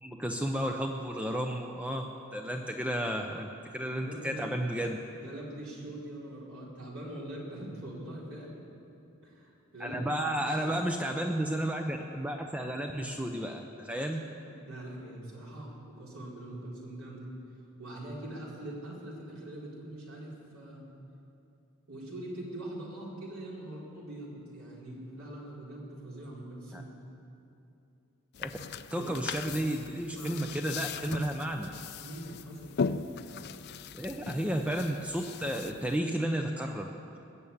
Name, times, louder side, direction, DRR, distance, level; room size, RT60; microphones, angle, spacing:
voice 1, 0.0-2.1 2.3-3.5 3.7-5.0 9.8-14.2 26.7-26.8 28.4-28.5 28.9-31.7 33.9-36.9, right 1 dB, 5° right, 3 dB, 0.6 m, -32 dB
voice 2, 3.9-4.4 5.1-8.6 9.2-10.8 14.0-17.3 17.8-20.8 21.9-26.9 28.9-29.1 29.4-29.5 30.0-30.7 32.0-32.7, right 1 dB, 75° right, -4 dB, 3.9 m, -43 dB
sound 1, 28.3-36.0, left 5 dB, 50° left, 0.4 m, -39 dB
21.0 x 7.0 x 8.6 m, 2.7 s
head